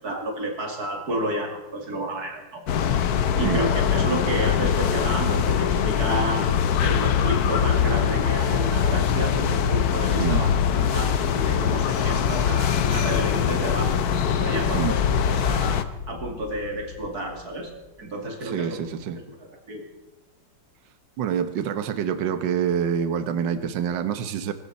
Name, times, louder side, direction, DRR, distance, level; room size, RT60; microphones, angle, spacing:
voice 1, 0.0-2.6 3.4-6.5 6.8-14.1 14.3-15.0 15.3-15.8 16.1-17.7 18.0-18.8 19.3-19.4 19.7-19.8, right 1 dB, 50° right, 2 dB, 3.0 m, -31 dB
sound 1, 2.7-15.8, left 8 dB, 60° left, 1.2 m, -22 dB
voice 2, 10.2-10.5 14.7-15.0 18.4-19.2 21.2-24.5, right 8 dB, 70° right, 10 dB, 1.7 m, -26 dB
sound 2, 11.7-17.3, left 3 dB, 5° left, 5.9 m, -43 dB
sound 3, 14.9-17.9, left 6 dB, 85° left, 1.8 m, -34 dB
23.5 x 13.0 x 4.2 m, 1.1 s
omnidirectional pair, 2.1 m